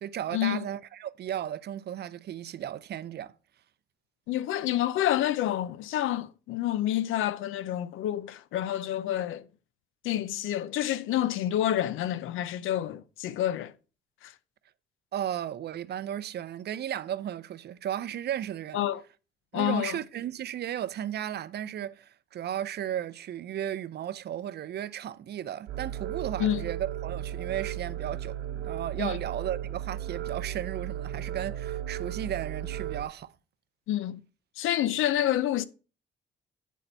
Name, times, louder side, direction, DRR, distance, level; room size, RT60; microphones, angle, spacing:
voice 1, 0.0-3.3 15.1-18.8 19.5-33.3, right 10 dB, 55° right, 0.5 m, -35 dB
voice 2, 4.3-9.5 10.0-13.7 14.2-14.3 18.7-19.0 19.5-20.0 26.4-26.6 29.0-29.2 33.9-34.2 34.6-35.6, left 12 dB, 85° left, 0.5 m, -28 dB
sound 1, 25.7-33.0, right 12 dB, 90° right, 0.8 m, -35 dB
9.2 x 4.1 x 4.3 m
cardioid pair, 90°, 20 cm